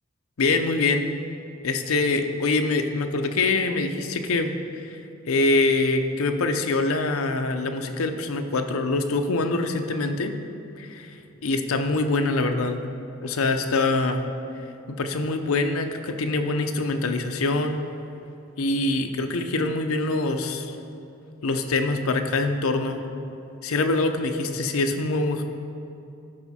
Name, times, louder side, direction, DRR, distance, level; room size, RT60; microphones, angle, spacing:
voice 1, 0.4-1.0 1.6-5.0 5.3-10.3 10.8-11.2 11.4-12.9 13.2-14.3 15.0-17.8 18.6-20.8 21.4-23.0 23.6-25.4, left 3 dB, 90° left, 7 dB, 0.6 m, -24 dB
11.5 x 4.9 x 4.2 m, 2.7 s
head